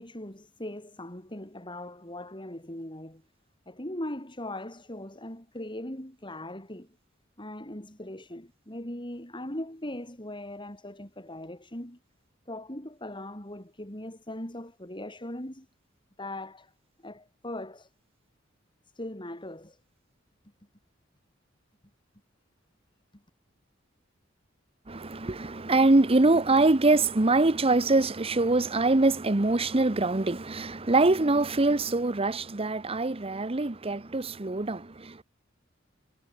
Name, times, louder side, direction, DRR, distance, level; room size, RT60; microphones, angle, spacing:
voice 1, 0.0-3.2 3.7-6.9 7.4-12.0 12.5-15.7 16.2-16.7 17.0-17.9 18.9-19.8, left 1 dB, 25° left, 6.2 m, -39 dB
voice 2, 24.9-35.2, right 2 dB, 30° right, 0.9 m, -24 dB
head